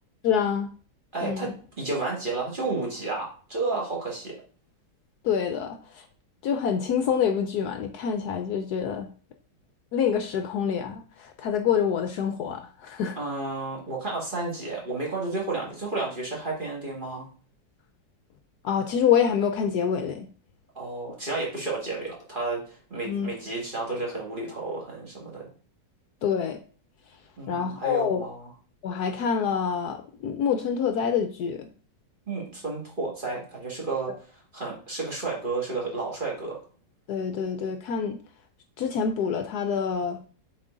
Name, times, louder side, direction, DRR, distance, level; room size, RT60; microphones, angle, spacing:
voice 1, 0.2-0.7 1.2-1.5 5.2-6.0 6.4-9.1 9.9-13.2 18.6-20.3 23.1-23.3 26.2-26.6 27.5-28.2 28.8-31.7 37.1-38.2 38.8-40.2, left 7 dB, 70° left, 7 dB, 1.1 m, -26 dB
voice 2, 1.1-4.4 13.2-17.3 20.8-25.5 27.4-28.5 32.3-36.6, right 3 dB, 30° right, -2 dB, 2.1 m, -32 dB
7.2 x 4.4 x 3.8 m, 0.40 s
omnidirectional pair, 2.0 m